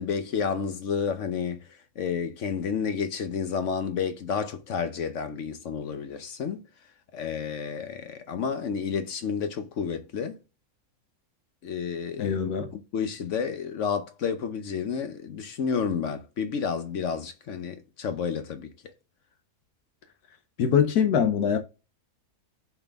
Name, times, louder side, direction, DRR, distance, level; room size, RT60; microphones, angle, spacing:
voice 1, 0.0-1.7 2.0-6.6 7.1-10.4 11.6-12.4 12.7-18.7, left 6 dB, 60° left, 0.9 m, -30 dB
voice 2, 12.2-12.7 20.6-21.6, left 7 dB, 80° left, 1.2 m, -23 dB
6.9 x 4.1 x 3.4 m
omnidirectional pair, 1.6 m